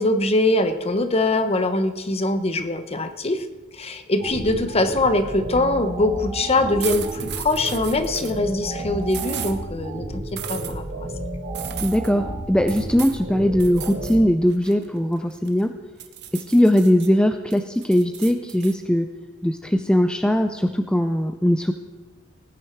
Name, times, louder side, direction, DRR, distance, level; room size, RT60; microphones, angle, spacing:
voice 1, 0.0-3.4 3.8-11.1, left 2 dB, 30° left, 9 dB, 1.0 m, -23 dB
sound 1, 4.2-14.2, right 1 dB, 75° right, 4.2 m, -32 dB
sound 2, 6.8-8.4 9.1-9.5 10.4-10.7 11.5-12.1 12.7-13.2 13.6-14.2 14.5-15.6 16.0-17.1 17.5-18.7, right 11 dB, 60° right, 1.1 m, -35 dB
voice 2, 11.8-15.7 16.3-19.1 19.4-21.7, equal, 5° left, 7 dB, 0.4 m, -20 dB
19.0 x 9.6 x 4.6 m, 1.2 s
head